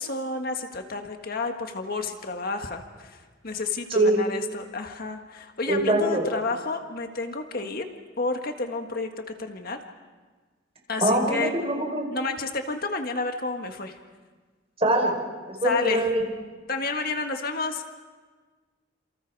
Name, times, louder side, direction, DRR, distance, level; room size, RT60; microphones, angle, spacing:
voice 1, 0.0-3.2 3.4-7.9 8.2-9.8 10.9-11.5 12.1-14.0 15.6-16.1 16.7-17.8, left 3 dB, 55° left, 5 dB, 1.7 m, -30 dB
voice 2, 5.7-6.2 11.0-12.0 14.8-15.1 15.5-16.2, right 1 dB, 30° right, 1 dB, 4.7 m, -23 dB
29.0 x 28.0 x 4.8 m, 1.4 s
head